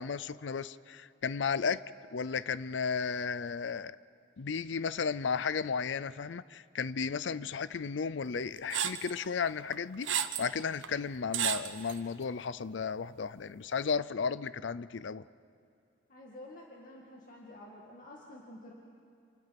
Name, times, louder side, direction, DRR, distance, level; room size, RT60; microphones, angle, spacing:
voice 1, 0.0-1.8 2.1-4.0 4.4-10.1 10.4-15.2, left 5 dB, 75° left, 17 dB, 0.5 m, -34 dB
sound 1, 8.7-9.1 9.7-10.5 10.8-10.9 11.3-12.0, right 9 dB, 90° right, 1.0 m, -32 dB
voice 2, 16.1-18.7, left 1 dB, 45° left, -2 dB, 2.2 m, -50 dB
29.0 x 27.5 x 6.0 m, 2.4 s
head